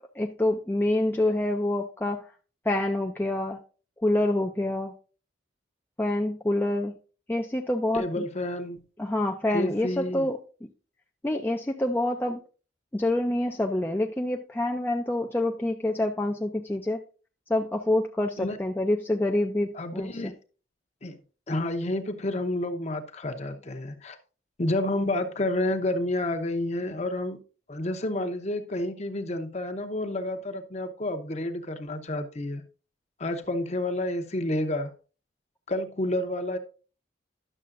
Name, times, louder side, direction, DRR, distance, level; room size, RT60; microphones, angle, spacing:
voice 1, 0.2-2.2 2.7-3.6 4.0-4.9 6.0-6.9 7.3-8.2 9.0-10.7 11.2-12.4 12.9-17.0 17.5-20.1, left 1 dB, 10° left, 0.4 m, -27 dB
voice 2, 7.9-8.9 9.5-10.3 18.4-18.6 19.7-20.4 21.0-21.2 21.5-24.2 24.6-27.4 27.7-32.7 33.2-34.9 35.7-36.6, left 1 dB, 35° left, 0.7 m, -30 dB
11.0 x 6.6 x 2.5 m
head